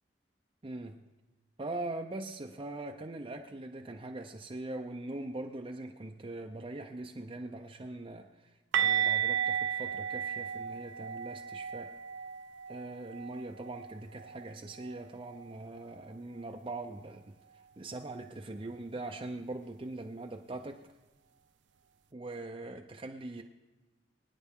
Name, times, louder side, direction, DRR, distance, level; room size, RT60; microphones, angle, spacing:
voice 1, 0.6-1.0 1.6-11.9 12.7-20.9 22.1-23.4, right 2 dB, 30° right, 0.5 m, -42 dB
sound 1, 8.7-14.5 14.8-15.0 15.3-15.5 18.7-18.8, right 8 dB, 80° right, 0.5 m, -34 dB
23.0 x 9.9 x 3.6 m
head